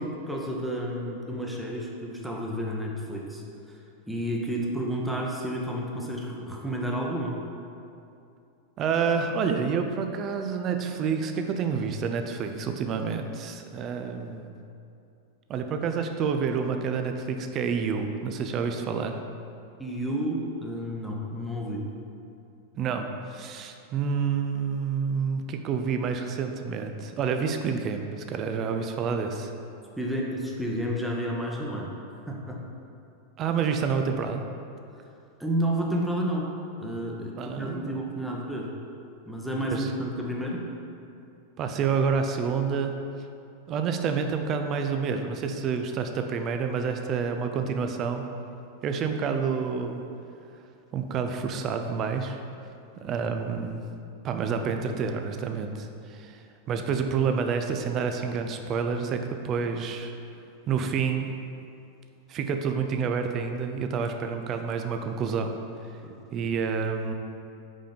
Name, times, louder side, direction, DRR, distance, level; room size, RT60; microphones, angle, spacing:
voice 1, 0.0-3.8 4.1-7.4 19.8-21.8 30.0-31.9 32.3-32.6 35.4-36.5 36.8-38.7 39.3-40.6 53.0-53.2 66.0-66.1, equal, 5° right, -2 dB, 0.9 m, -31 dB
voice 2, 8.8-14.6 15.5-19.2 22.8-29.5 33.4-34.4 37.4-38.0 39.7-39.9 41.6-42.9 43.7-48.2 48.8-50.0 50.9-52.4 53.0-53.8 54.2-60.1 60.7-61.3 62.3-65.6 66.3-67.1, right 6 dB, 35° right, 5 dB, 0.5 m, -28 dB
5.4 x 5.0 x 5.1 m, 2.6 s
figure-of-eight pair, 90°, 0 cm